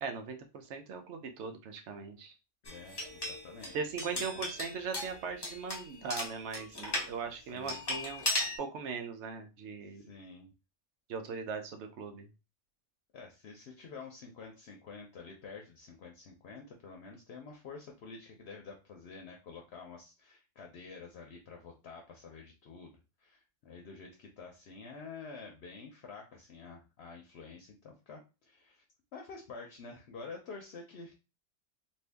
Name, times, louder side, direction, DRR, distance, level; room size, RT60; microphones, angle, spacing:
voice 1, 0.0-2.3 3.7-8.2 8.6-10.0 11.1-12.3, right 5 dB, 70° right, 6 dB, 0.9 m, -39 dB
voice 2, 2.6-3.8 4.1-4.6 7.3-7.8 9.9-10.5 13.1-28.8 29.1-31.1, left 4 dB, 65° left, 1 dB, 0.8 m, -49 dB
sound 1, 2.7-7.1 7.7-8.6, left 1 dB, 25° left, 0.7 m, -37 dB
2.7 x 2.6 x 3.3 m, 0.29 s
omnidirectional pair, 1.3 m